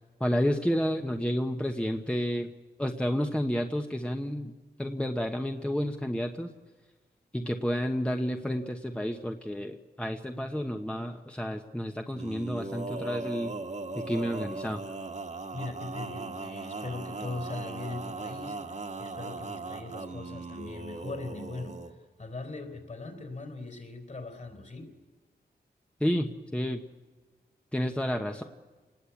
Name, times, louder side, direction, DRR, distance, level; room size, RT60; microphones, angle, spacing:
voice 1, 0.2-2.5 2.8-4.5 4.8-6.5 7.3-13.5 13.9-14.8 26.0-26.8 27.7-28.4, equal, 5° left, 4 dB, 1.1 m, -30 dB
Male singing, 12.1-21.9, right 3 dB, 40° right, 1.6 m, -38 dB
voice 2, 15.5-24.9, left 3 dB, 45° left, 5 dB, 4.4 m, -40 dB
29.0 x 20.0 x 8.6 m, 1.3 s
wide cardioid pair, 105°, 18 cm